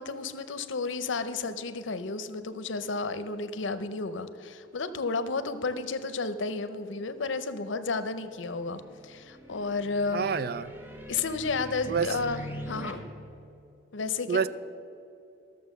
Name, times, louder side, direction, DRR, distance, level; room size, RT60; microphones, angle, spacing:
voice 1, 0.0-10.3 11.1-13.0 13.9-14.5, left 4 dB, 85° left, 0.7 m, -32 dB
sound 1, 8.0-12.9, equal, 10° right, 0.9 m, -43 dB
voice 2, 10.1-10.7 11.9-12.1 14.3-14.5, right 6 dB, 50° right, 0.3 m, -27 dB
13.5 x 6.8 x 6.5 m
head